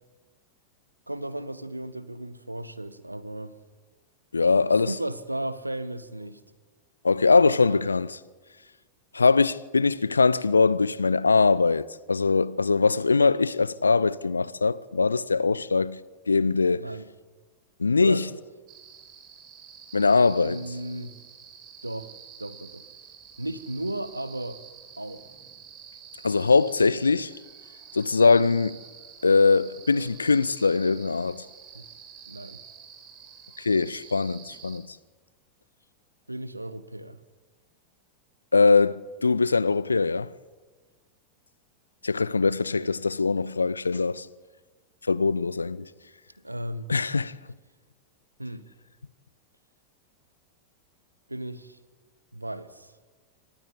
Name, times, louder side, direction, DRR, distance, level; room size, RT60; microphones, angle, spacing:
voice 1, 1.1-3.5 4.6-6.4 7.2-7.4 7.7-7.9 16.8-17.1 18.0-18.3 20.4-21.1 21.8-22.1 22.4-22.8 23.4-24.6 25.0-25.3 31.7-31.8 32.3-32.6 36.3-37.2 42.7-42.9 46.4-46.9 48.4-48.6 51.3-51.8 52.3-52.9, right 1 dB, 85° right, 1.2 m, -35 dB
voice 2, 4.3-4.9 7.0-8.2 9.1-16.0 16.3-16.9 17.8-18.3 19.9-20.6 26.2-27.3 27.9-28.8 29.2-31.4 33.6-34.8 38.5-40.3 42.0-44.3 45.1-45.9 46.9-47.3, left 4 dB, 75° left, 0.7 m, -22 dB
sound 1, 18.7-34.8, right 7 dB, 40° right, 4.1 m, -48 dB
24.5 x 19.5 x 8.5 m
figure-of-eight pair, 90°, 0 cm